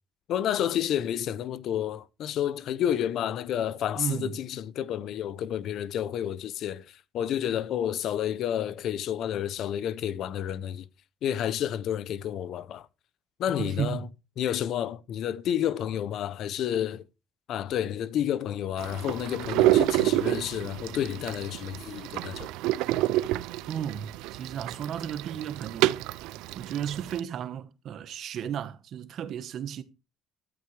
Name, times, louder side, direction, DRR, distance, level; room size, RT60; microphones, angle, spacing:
voice 1, 0.3-10.8 11.2-12.9 13.4-14.1 14.4-17.0 17.5-22.5, left 10 dB, 60° left, 0.7 m, -30 dB
voice 2, 4.0-4.3 13.6-14.1 23.7-26.0 26.5-29.8, right 9 dB, 55° right, 1.3 m, -34 dB
sound 1, 18.8-27.2, right 16 dB, 85° right, 0.5 m, -28 dB
13.5 x 12.5 x 3.3 m
cardioid pair, 125°, 0 cm